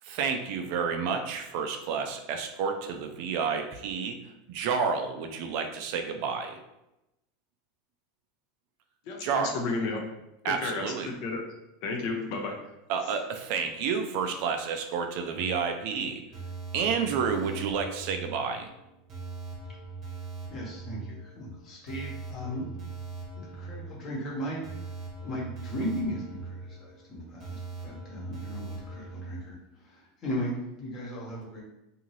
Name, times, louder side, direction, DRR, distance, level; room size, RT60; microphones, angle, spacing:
voice 1, 0.0-4.2 4.5-6.6 9.2-9.6 10.4-11.1 12.9-16.2 16.7-18.7, right 6 dB, 60° right, 5 dB, 0.4 m, -30 dB
voice 2, 9.1-10.1 10.4-11.4 11.8-12.6, left 3 dB, 55° left, 2 dB, 0.5 m, -32 dB
sound 1, 15.3-29.4, right 4 dB, 35° right, 0.8 m, -41 dB
voice 3, 20.5-22.7 23.4-24.9 25.2-31.6, equal, 30° left, -4 dB, 1.0 m, -37 dB
2.7 x 2.5 x 3.1 m, 0.91 s
supercardioid pair, 145°, 0 cm